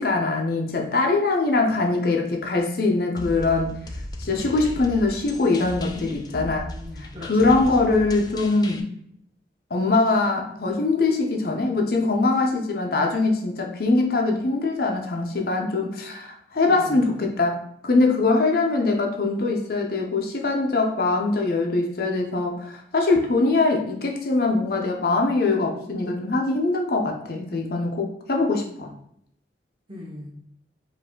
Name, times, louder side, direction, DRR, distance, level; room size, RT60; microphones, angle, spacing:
voice 1, 0.0-3.8 4.2-6.7 7.2-8.9 9.7-28.9, left 3 dB, 55° left, 1 dB, 0.6 m, -22 dB
sound 1, 3.2-8.8, left 1 dB, 20° left, 0.3 m, -37 dB
voice 2, 5.9-7.8 16.7-17.1 29.9-30.3, left 1 dB, 30° right, -4 dB, 1.2 m, -40 dB
4.6 x 2.7 x 3.7 m, 0.70 s
head